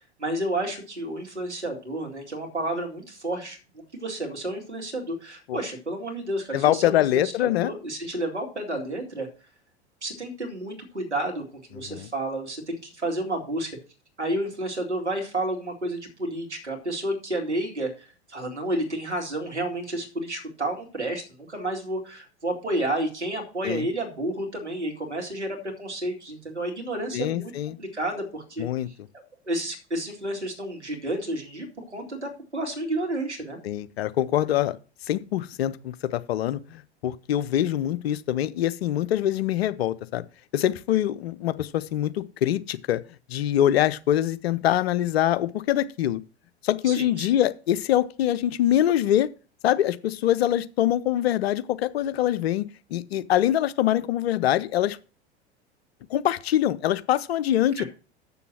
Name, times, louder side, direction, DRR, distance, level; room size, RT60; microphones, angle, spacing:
voice 1, 0.2-3.6 3.9-7.3 7.6-9.3 10.0-11.4 11.7-13.7 14.2-27.5 27.8-28.7 29.4-33.6 46.8-47.3 57.8-57.9, right 1 dB, 90° right, 2.5 m, -31 dB
voice 2, 6.5-7.7 11.9-12.1 23.6-23.9 27.1-27.8 28.6-28.9 33.6-34.8 35.1-40.2 40.5-43.0 43.3-46.2 46.6-49.3 49.6-52.6 52.9-55.0 56.1-57.8, left 12 dB, 65° left, 0.8 m, -24 dB
7.2 x 6.9 x 6.1 m
figure-of-eight pair, 85°, 33 cm